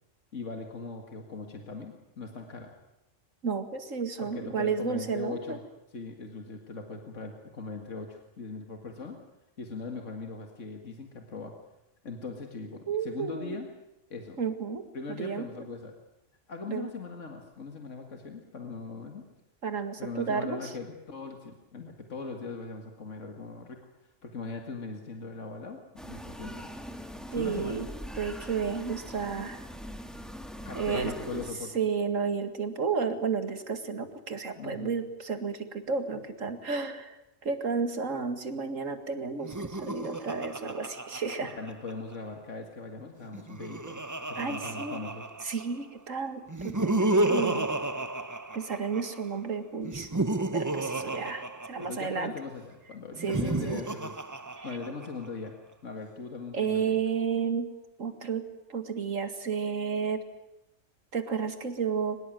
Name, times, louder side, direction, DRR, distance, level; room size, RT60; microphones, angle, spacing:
voice 1, 0.3-2.7 4.2-5.6 5.9-9.2 9.6-11.5 12.0-13.7 14.1-14.4 14.9-16.0 16.5-19.3 20.0-23.8 24.2-26.8 27.3-27.8 30.6-31.7 34.6-34.9 41.5-44.0 44.3-45.3 51.0-51.3 51.9-54.2 54.6-55.5 55.8-57.0, left 4 dB, 70° left, 3 dB, 2.4 m, -40 dB
voice 2, 3.4-5.6 12.9-13.6 14.4-15.5 16.7-16.9 19.6-20.7 27.3-27.9 28.1-29.7 30.7-31.4 31.7-41.6 44.4-45.0 45.4-47.7 48.5-50.1 50.5-52.3 53.2-53.8 54.6-54.7 56.5-57.7 58.0-60.2 61.1-62.2, right 5 dB, 80° right, 8 dB, 2.4 m, -32 dB
sound 1, 26.0-31.5, equal, ahead, 1.8 m, -42 dB
Laughter, 39.4-42.1 43.2-45.8 46.5-49.2 49.8-52.3 53.1-55.3, right 2 dB, 15° right, 0.7 m, -32 dB
23.5 x 20.5 x 9.2 m, 0.91 s
omnidirectional pair, 1.3 m